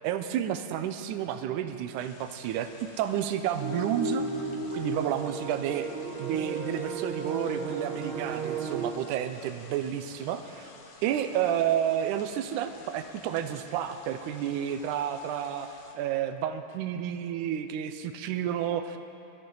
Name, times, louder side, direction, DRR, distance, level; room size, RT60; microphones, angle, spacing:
voice 1, 0.0-4.3 4.7-5.9 6.2-10.7 11.0-15.7 15.9-19.0, right 10 dB, 80° right, 8 dB, 2.2 m, -30 dB
sound 1, 2.0-15.9, left 3 dB, 65° left, 1.0 m, -52 dB
sound 2, 3.6-8.9, right 4 dB, 55° right, 1.5 m, -34 dB
23.0 x 13.0 x 3.9 m, 2.7 s
omnidirectional pair, 3.6 m